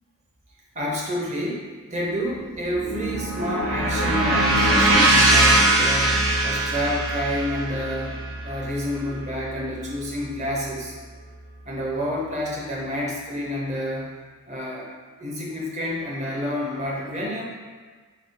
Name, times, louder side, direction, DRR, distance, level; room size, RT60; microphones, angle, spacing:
voice 1, 0.7-10.9 11.6-14.1 14.5-14.9 15.2-17.4, equal, 30° right, -3 dB, 0.7 m, -29 dB
sound 1, 2.3-10.5, right 1 dB, 70° right, 0.8 m, -22 dB
3.3 x 2.7 x 4.2 m, 1.5 s
head